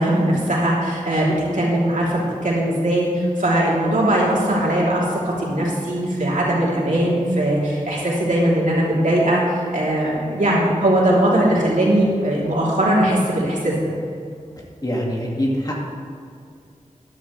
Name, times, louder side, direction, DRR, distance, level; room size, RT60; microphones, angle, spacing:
voice 1, 0.0-13.8, right 1 dB, 70° right, -5 dB, 3.1 m, -20 dB
voice 2, 14.8-15.8, equal, 30° left, -3 dB, 2.1 m, -23 dB
13.5 x 10.5 x 3.3 m, 2.3 s
wide cardioid pair, 80°, 14 cm